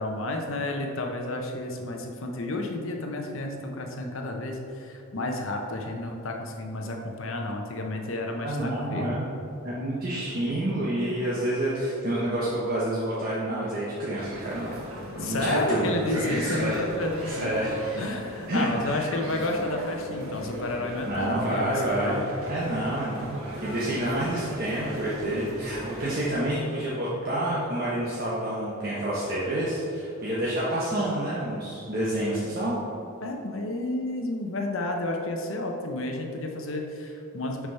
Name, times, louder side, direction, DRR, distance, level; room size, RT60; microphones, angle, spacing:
voice 1, 0.0-9.2 15.2-17.6 18.0-22.3 33.2-37.7, left 2 dB, 70° left, 2 dB, 0.9 m, -31 dB
voice 2, 8.4-9.3 9.6-14.8 15.1-16.8 17.3-17.8 18.5-19.2 21.1-22.2 22.5-32.8, right 1 dB, 45° right, -8 dB, 1.1 m, -28 dB
sound 1, 14.2-26.2, equal, 85° right, 1.4 m, -38 dB
7.0 x 4.8 x 5.6 m, 2.7 s
head